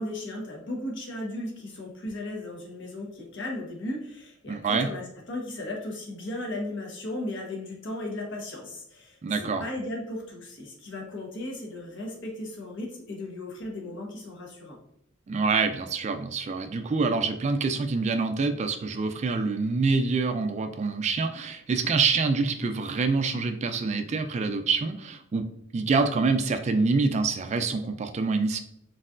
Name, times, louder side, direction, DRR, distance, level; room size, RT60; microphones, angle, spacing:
voice 1, 0.0-14.8, left 1 dB, 60° left, -1 dB, 1.3 m, -36 dB
voice 2, 4.5-4.9 9.2-9.6 15.3-25.5 25.7-28.6, right 4 dB, 35° right, 8 dB, 0.3 m, -26 dB
4.3 x 4.0 x 2.5 m, 0.73 s
head